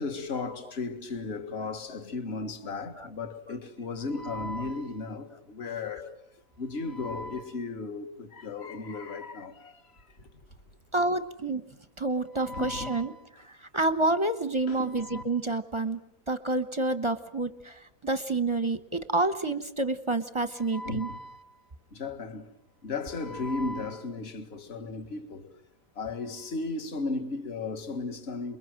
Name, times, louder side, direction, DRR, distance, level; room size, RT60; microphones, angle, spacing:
voice 1, 0.0-6.1 6.6-10.1 12.3-13.2 14.7-15.2 20.6-21.5 21.9-22.5 22.8-25.5 26.0-28.6, left 3 dB, 40° left, 2.0 m, -35 dB
voice 2, 10.9-11.6 12.0-13.1 13.4-16.0 16.3-21.1, right 2 dB, 20° right, 1.0 m, -29 dB
28.5 x 22.5 x 7.6 m
omnidirectional pair, 1.8 m